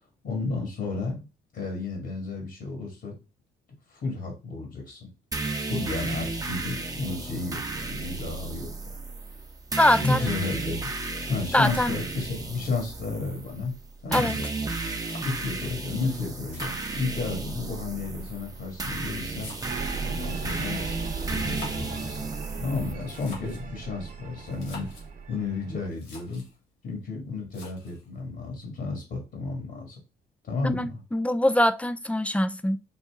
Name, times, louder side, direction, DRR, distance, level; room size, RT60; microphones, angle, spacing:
voice 1, 0.2-1.3 1.5-3.2 3.9-5.1 5.7-9.3 10.0-10.9 11.3-13.7 14.0-14.5 15.2-19.5 20.0-22.3 22.6-24.9 25.3-26.4 26.8-30.0 30.4-31.0, left 3 dB, 60° left, 1.8 m, -32 dB
sound 1, 5.3-22.9, right 3 dB, 20° right, 0.8 m, -33 dB
voice 2, 9.8-10.3 11.5-12.0 14.1-14.3 30.6-32.8, left 1 dB, 5° left, 0.3 m, -23 dB
sound 2, 15.0-15.7 16.5-17.4 18.3-20.0 21.3-22.1 22.9-23.7 24.5-25.1 25.6-25.7 25.9-26.6 27.5-28.1, left 3 dB, 75° left, 2.6 m, -46 dB
sound 3, 19.6-25.9, right 5 dB, 45° right, 1.0 m, -37 dB
5.4 x 2.6 x 3.5 m
cardioid pair, 90°, 20 cm